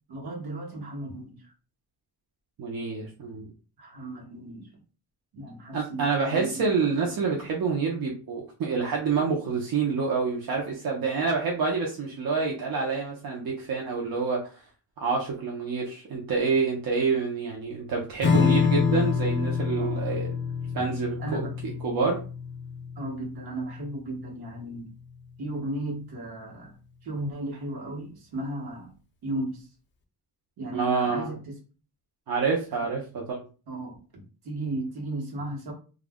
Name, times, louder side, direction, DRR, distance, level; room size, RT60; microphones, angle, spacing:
voice 1, 0.1-1.5 3.8-4.7 5.3-6.6 7.0-7.2 19.8-20.0 21.2-21.5 23.0-24.9 25.4-26.7 27.0-28.9 29.2-29.7 30.6-31.5 33.7-35.7, right 1 dB, 85° right, -1 dB, 1.1 m, -35 dB
voice 2, 2.6-3.5 5.7-14.6 15.0-20.3 20.7-22.2 30.7-31.3 32.3-33.5, right 4 dB, 65° right, -2 dB, 0.6 m, -27 dB
Strum, 18.2-25.1, left 6 dB, 30° left, 0.4 m, -27 dB
2.3 x 2.0 x 3.4 m, 0.36 s
wide cardioid pair, 165°, 37 cm